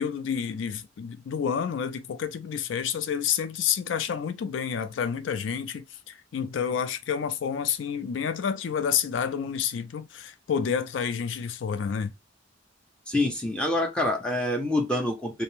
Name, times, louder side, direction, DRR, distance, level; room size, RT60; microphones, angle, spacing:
voice 1, 0.0-12.1, left 7 dB, 75° left, 0.4 m, -29 dB
voice 2, 13.1-15.4, left 1 dB, 5° left, 0.4 m, -26 dB
2.6 x 2.0 x 2.9 m
head